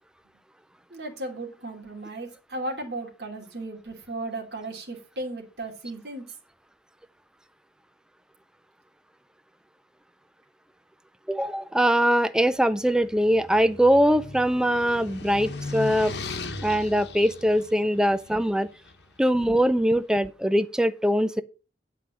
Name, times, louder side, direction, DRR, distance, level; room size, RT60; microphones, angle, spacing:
voice 1, 0.9-6.2, right 2 dB, 65° right, 2.9 m, -35 dB
voice 2, 11.3-16.2 16.6-18.7 19.2-21.4, equal, 5° right, 0.4 m, -22 dB
sound 1, 12.8-19.1, left 3 dB, 65° left, 1.3 m, -38 dB
9.1 x 5.0 x 7.3 m
head